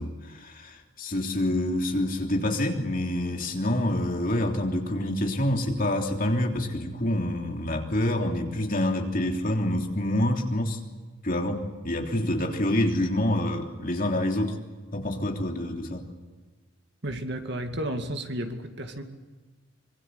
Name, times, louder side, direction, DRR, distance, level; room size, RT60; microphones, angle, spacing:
voice 1, 0.0-10.8 11.2-14.6 14.9-16.0, left 1 dB, 40° left, 2 dB, 3.3 m, -27 dB
voice 2, 17.0-19.0, right 1 dB, 55° right, 6 dB, 2.4 m, -32 dB
25.0 x 24.0 x 8.3 m, 1.3 s
head